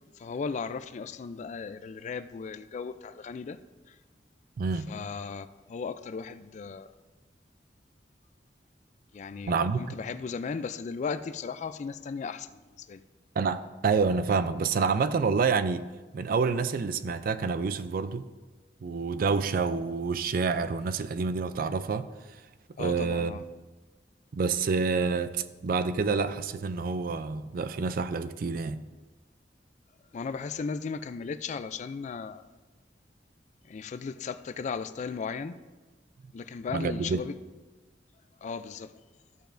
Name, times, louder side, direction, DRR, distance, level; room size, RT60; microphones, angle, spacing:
voice 1, 0.2-3.6 3.9-4.0 4.9-6.9 9.1-13.0 22.8-23.4 30.1-32.4 33.7-35.5 36.3-37.3 38.4-38.9, left 5 dB, 40° left, 0.3 m, -36 dB
voice 2, 4.6-4.9 9.5-9.8 13.4-15.9 16.1-18.3 18.8-22.1 22.8-23.4 24.3-28.8 36.7-37.2, right 4 dB, 55° right, 0.4 m, -28 dB
13.5 x 6.8 x 2.6 m
head